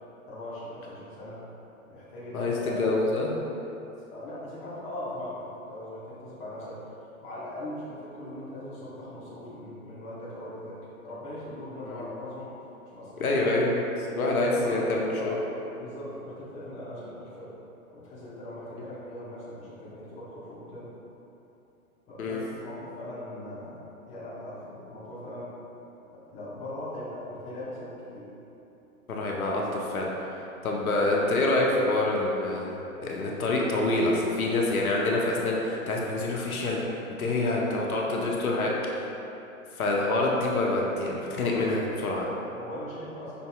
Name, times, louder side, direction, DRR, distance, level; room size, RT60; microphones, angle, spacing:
voice 1, 0.3-1.4 1.9-3.2 3.6-3.7 4.0-6.8 7.2-10.8 11.0-12.5 12.9-13.4 14.6-15.4 15.8-17.5 17.9-20.9 22.1-25.5 26.3-28.3 42.5-43.5, left 1 dB, 15° left, -9 dB, 0.7 m, -40 dB
voice 2, 2.3-3.3 11.8-12.0 13.2-13.9 14.1-15.4 22.2-22.4 29.1-30.3 30.6-36.8 37.2-39.1 39.7-42.3, left 2 dB, 75° left, -2 dB, 0.7 m, -26 dB
5.5 x 2.6 x 2.2 m, 3.0 s
figure-of-eight pair, 115°, 43 cm